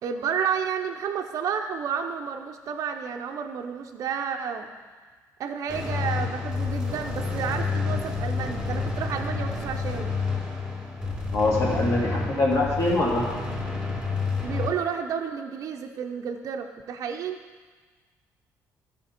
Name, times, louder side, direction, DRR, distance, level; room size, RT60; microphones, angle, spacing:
voice 1, 0.0-4.7 5.4-10.1 14.4-17.4, right 7 dB, 55° right, 4 dB, 0.6 m, -31 dB
sound 1, 5.7-14.7, left 4 dB, 10° right, 2.4 m, -29 dB
voice 2, 11.3-13.2, left 2 dB, 45° left, -3 dB, 2.5 m, -23 dB
13.0 x 5.1 x 4.3 m, 1.4 s
cardioid pair, 115°, 7 cm